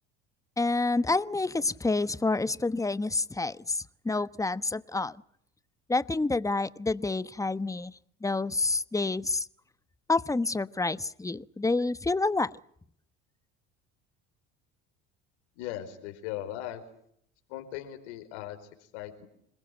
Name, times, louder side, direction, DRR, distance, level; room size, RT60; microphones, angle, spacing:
voice 1, 0.6-5.2 5.9-7.9 8.2-9.5 10.1-12.5, left 3 dB, 10° left, 16 dB, 1.1 m, -28 dB
voice 2, 15.6-16.8 17.5-19.3, left 12 dB, 75° left, 6 dB, 4.7 m, -39 dB
27.5 x 21.0 x 9.1 m, 0.69 s
hypercardioid pair, 75°, 34 cm